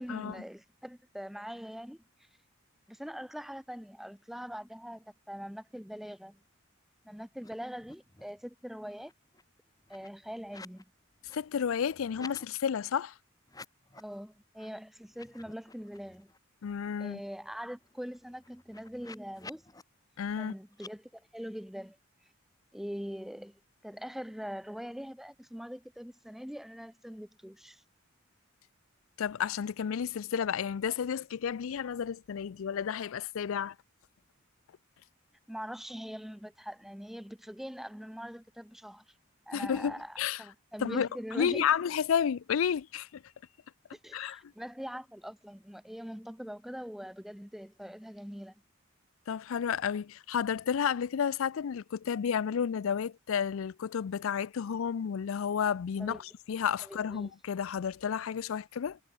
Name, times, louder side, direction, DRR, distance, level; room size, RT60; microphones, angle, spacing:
voice 1, 0.0-2.3 2.9-6.4 7.0-9.1 9.9-10.9 14.0-16.3 17.0-19.6 20.4-22.0 22.7-27.8 35.5-39.2 39.5-41.7 44.0-48.5 56.0-56.2 56.8-57.3, equal, ahead, 0.5 m, -42 dB
sound 1, 7.3-7.5 7.7-8.4 8.8-10.8 11.1-12.5 13.4-14.1 14.5-14.7 15.0-16.4 16.8-16.9 17.1-19.8 20.7-20.9, left 3 dB, 15° left, 1.6 m, -52 dB
voice 2, 11.3-13.1 16.6-17.2 20.2-20.5 29.2-33.7 39.5-40.4 40.8-41.1 41.3-43.2 44.1-44.4 49.3-59.0, left 7 dB, 70° left, 0.4 m, -31 dB
head